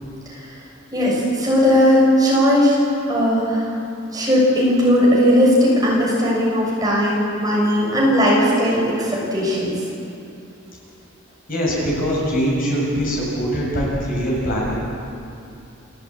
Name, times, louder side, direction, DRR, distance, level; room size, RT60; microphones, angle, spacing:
voice 1, 0.3-0.6 0.9-2.8 3.1-3.8 4.1-9.7, equal, 20° right, -5 dB, 6.5 m, -17 dB
voice 2, 11.5-14.8, equal, 45° left, -4 dB, 7.1 m, -22 dB
29.5 x 13.5 x 8.9 m, 2.7 s
head